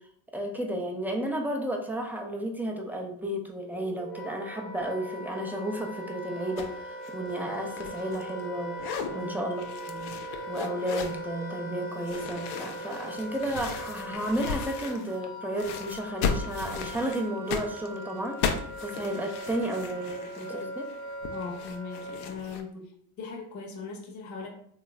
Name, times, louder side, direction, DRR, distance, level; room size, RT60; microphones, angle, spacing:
voice 1, 0.3-8.8 9.1-10.1 10.5-18.4 18.8-20.9 22.7-22.8, right 1 dB, 5° right, 1 dB, 0.4 m, -33 dB
Wind instrument woodwind instrument, 3.6-22.4, right 1 dB, 40° right, 0.9 m, -40 dB
sound 1, 6.6-6.8 7.0-8.5 8.7-9.1 9.6-11.2 12.0-15.3 15.6-22.6, left 6 dB, 80° left, 0.6 m, -36 dB
voice 2, 9.0-9.5 21.3-22.7 23.2-24.5, left 5 dB, 40° left, 1 dB, 0.8 m, -39 dB
3.1 x 2.4 x 3.1 m, 0.66 s
supercardioid pair, 85°, 44 cm